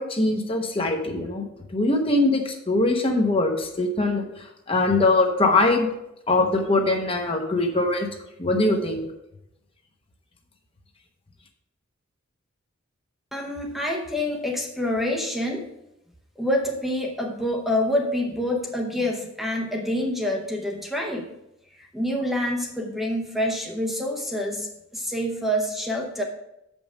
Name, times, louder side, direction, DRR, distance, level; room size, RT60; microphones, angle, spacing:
voice 1, 0.0-1.4 1.7-4.2 4.7-5.9 6.3-8.1 8.4-9.1, left 2 dB, 25° left, 3 dB, 0.9 m, -22 dB
voice 2, 13.3-15.6 16.4-21.3 21.7-26.2, left 1 dB, ahead, 0 dB, 0.8 m, -27 dB
7.6 x 5.4 x 4.9 m, 0.87 s
head